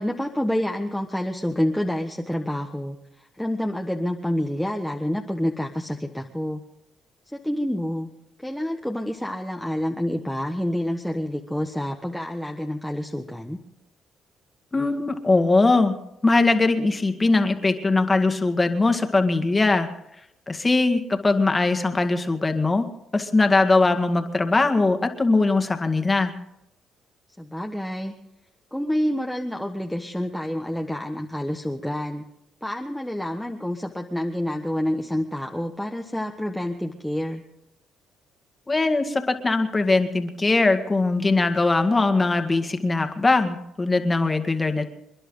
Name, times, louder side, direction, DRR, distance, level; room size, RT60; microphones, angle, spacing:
voice 1, 0.0-3.0 3.4-6.6 7.3-8.1 8.4-13.6 27.4-28.1 28.7-32.2 32.6-37.4, left 1 dB, 5° left, 1 dB, 1.3 m, -28 dB
voice 2, 14.7-16.0 16.2-19.9 20.5-22.8 23.1-26.3 38.7-44.8, left 3 dB, 20° left, 6 dB, 1.9 m, -21 dB
28.5 x 11.0 x 3.9 m, 0.82 s
cardioid pair, 95°, 0 cm